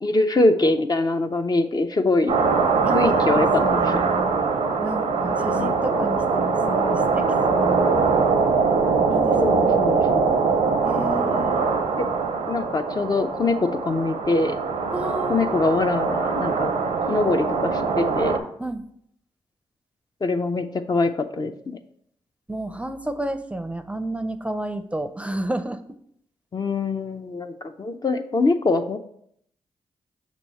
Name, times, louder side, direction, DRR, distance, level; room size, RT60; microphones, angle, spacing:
voice 1, 0.0-2.4 2.9-4.0 5.5-5.8 9.4-10.4 10.9-11.2 12.5-14.6 15.3-16.7 17.1-18.4 20.2-21.8 26.5-29.0, left 2 dB, 40° left, 7 dB, 0.5 m, -23 dB
sound 1, 2.3-18.4, right 4 dB, 80° right, 0.6 m, -22 dB
voice 2, 2.8-4.4 4.8-7.9 9.1-10.1 10.8-11.7 14.9-15.7 18.6-18.8 22.5-25.8, right 1 dB, 10° right, 10 dB, 0.5 m, -31 dB
6.1 x 3.0 x 5.5 m, 0.70 s
supercardioid pair, 45°, 11 cm